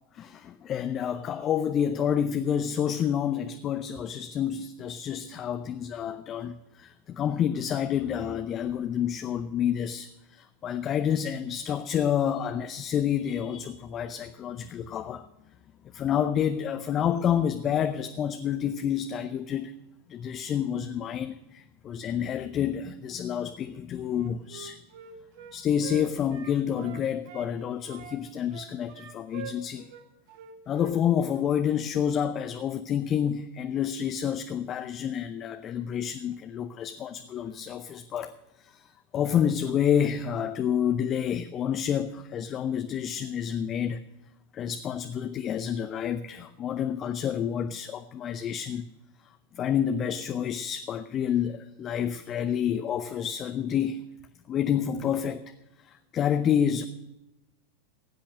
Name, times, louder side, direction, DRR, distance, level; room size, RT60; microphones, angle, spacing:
voice 1, 0.1-15.2 15.9-19.7 20.1-24.8 25.5-29.9 30.7-38.3 38.6-44.0 44.5-48.9 49.5-54.0 54.5-55.4 55.9-56.9, left 9 dB, 30° left, 9 dB, 0.6 m, -29 dB
Wind instrument woodwind instrument, 24.1-27.5 27.9-31.0 31.2-31.5, right 6 dB, 50° right, 1.4 m, -44 dB
15.5 x 8.6 x 6.1 m, 0.98 s
figure-of-eight pair, 90°, 0 cm